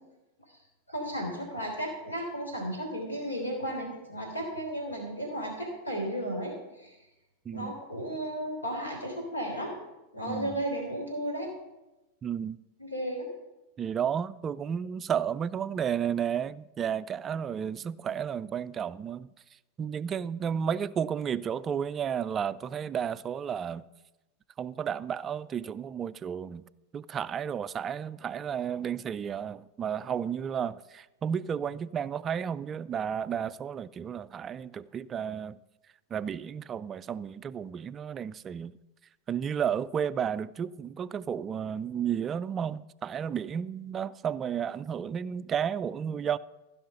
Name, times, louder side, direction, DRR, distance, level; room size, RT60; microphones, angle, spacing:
voice 1, 0.9-7.0 7.5-9.7 10.1-11.5 12.8-13.3, equal, 80° left, 3.4 m, -34 dB
voice 2, 7.5-7.8 10.3-10.6 12.2-12.6 13.8-19.3 19.8-23.8 24.6-26.6 26.9-35.6 36.1-38.7 39.3-46.4, right 8 dB, 25° right, 0.3 m, -32 dB
15.0 x 5.7 x 5.5 m
figure-of-eight pair, 90°, 0 cm